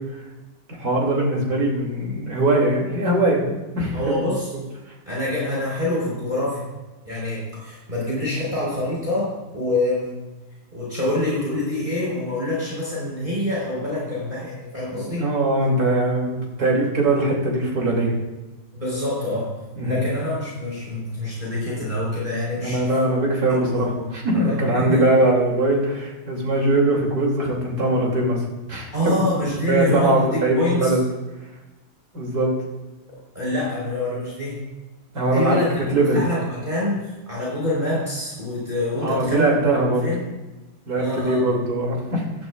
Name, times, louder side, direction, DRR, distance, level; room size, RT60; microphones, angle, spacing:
voice 1, 0.7-3.5 3.8-4.1 14.9-18.1 19.7-20.0 22.6-29.2 29.7-31.0 32.1-32.5 35.1-35.6 35.9-36.3 39.0-40.1 40.9-42.2, right 1 dB, 50° right, -2 dB, 3.2 m, -21 dB
voice 2, 3.9-4.5 5.1-6.7 7.0-10.2 10.7-15.3 18.7-19.5 19.8-23.0 23.5-25.1 28.9-31.0 33.3-34.6 35.3-35.8 36.1-39.6 40.0-40.3 41.0-41.6, left 1 dB, 25° right, -6 dB, 4.4 m, -26 dB
15.5 x 12.5 x 2.5 m, 1.1 s
omnidirectional pair, 2.1 m